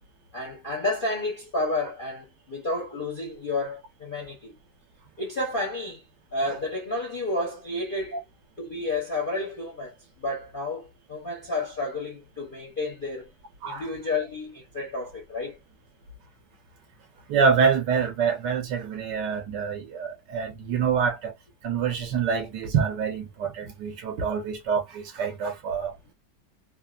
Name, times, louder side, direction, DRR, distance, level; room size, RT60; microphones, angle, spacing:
voice 1, 0.3-4.5 5.2-6.0 6.3-8.2 8.6-13.3 13.6-15.6, left 2 dB, 40° left, 0.7 m, -31 dB
voice 2, 17.3-21.3 21.6-26.1, right 6 dB, 65° right, 1.4 m, -26 dB
3.6 x 2.1 x 2.3 m
omnidirectional pair, 2.1 m